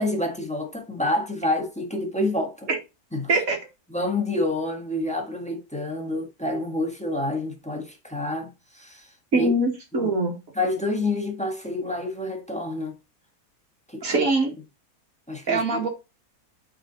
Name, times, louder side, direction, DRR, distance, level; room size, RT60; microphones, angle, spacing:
voice 1, 0.0-2.7 3.1-3.4 3.9-9.5 9.9-10.1 10.5-12.9 13.9-14.3 15.3-15.8, left 1 dB, 5° left, 1.3 m, -28 dB
voice 2, 9.3-10.4 14.0-14.5 15.5-15.9, right 2 dB, 60° right, 2.4 m, -23 dB
8.6 x 4.0 x 4.0 m
omnidirectional pair, 1.7 m